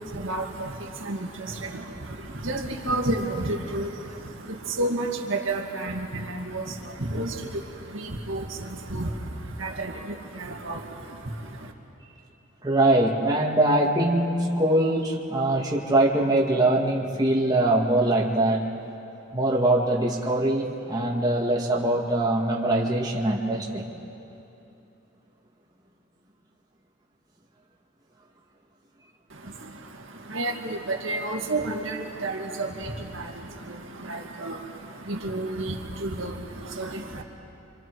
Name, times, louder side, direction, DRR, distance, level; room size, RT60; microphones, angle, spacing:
voice 1, 0.0-11.7 29.3-37.2, right 2 dB, 70° right, 1 dB, 2.0 m, -32 dB
voice 2, 12.6-18.6 19.3-23.9, right 1 dB, 20° right, -3 dB, 1.7 m, -22 dB
26.5 x 26.5 x 4.7 m, 2.8 s
head